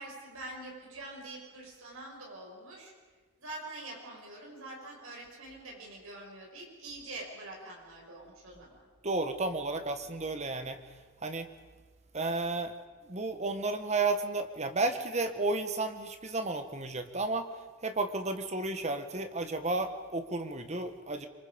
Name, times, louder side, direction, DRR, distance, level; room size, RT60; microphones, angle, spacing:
voice 1, 0.0-2.9 3.4-8.9, right 2 dB, 65° right, -1 dB, 6.5 m, -45 dB
voice 2, 9.0-10.8 11.2-11.5 12.1-12.7 13.1-17.5 17.8-21.3, right 3 dB, 30° right, 8 dB, 1.5 m, -32 dB
26.5 x 24.0 x 5.3 m, 1.4 s
head